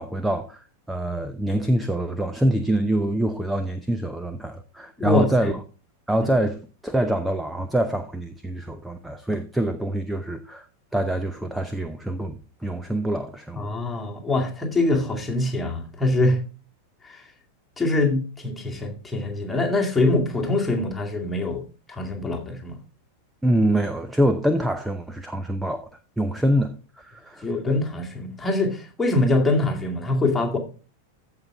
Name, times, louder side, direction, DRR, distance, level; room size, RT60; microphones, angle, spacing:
voice 1, 0.0-5.5 6.1-10.7 10.9-13.7 23.4-25.8 26.2-27.5, right 1 dB, 5° right, 0.7 m, -25 dB
voice 2, 5.0-5.5 13.6-16.4 17.0-17.2 17.8-21.6 21.9-22.8 27.4-30.6, left 2 dB, 10° left, 2.2 m, -24 dB
14.5 x 5.8 x 3.4 m
figure-of-eight pair, 90°, 0 cm